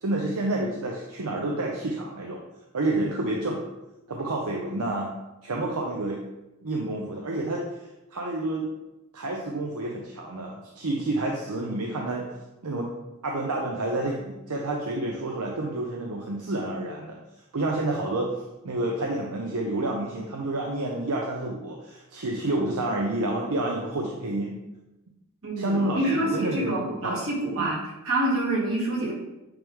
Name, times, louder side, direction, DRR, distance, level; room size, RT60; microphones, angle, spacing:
voice 1, 0.0-2.4 2.7-3.6 4.1-5.1 5.4-6.2 6.6-7.6 8.1-8.7 9.1-12.3 12.6-12.9 13.2-17.2 17.5-18.3 18.6-24.6 25.6-27.3 27.6-27.7, right 2 dB, 85° right, 0 dB, 0.7 m, -29 dB
voice 2, 25.4-29.1, right 1 dB, 65° right, -5 dB, 2.3 m, -27 dB
9.1 x 3.5 x 3.6 m, 1.0 s
head